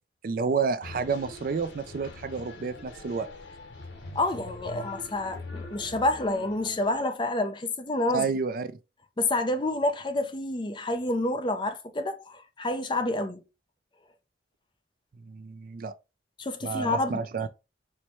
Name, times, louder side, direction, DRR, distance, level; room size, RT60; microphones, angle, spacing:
voice 1, 0.2-3.3 8.1-8.7 15.3-15.9 16.6-17.5, right 5 dB, 50° right, 0.4 m, -30 dB
sound 1, 0.8-7.0, left 2 dB, 90° left, 0.9 m, -43 dB
voice 2, 4.1-8.2 9.2-13.4 16.4-17.2, left 2 dB, 25° left, 0.5 m, -28 dB
4.5 x 2.2 x 4.2 m
head